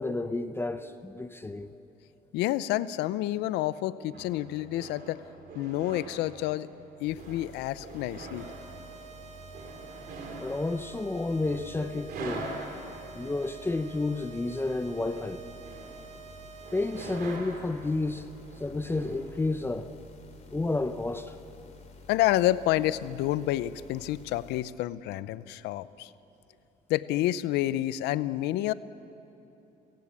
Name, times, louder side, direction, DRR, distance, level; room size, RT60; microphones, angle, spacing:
voice 1, 0.0-1.8 10.4-12.5 13.1-15.4 16.7-18.3 18.6-19.9 20.5-21.4, left 2 dB, 15° left, 0.8 m, -31 dB
voice 2, 2.3-5.2 5.5-6.7 7.0-8.5 22.1-26.1 26.9-28.7, left 14 dB, 90° left, 0.7 m, -29 dB
sound 1, 4.1-19.5, right 3 dB, 65° right, 4.3 m, -45 dB
sound 2, 7.0-24.6, left 3 dB, 40° left, 3.0 m, -51 dB
sound 3, 8.4-17.4, right 6 dB, 40° right, 2.0 m, -48 dB
29.5 x 16.0 x 8.5 m
cardioid pair, 110°, 17 cm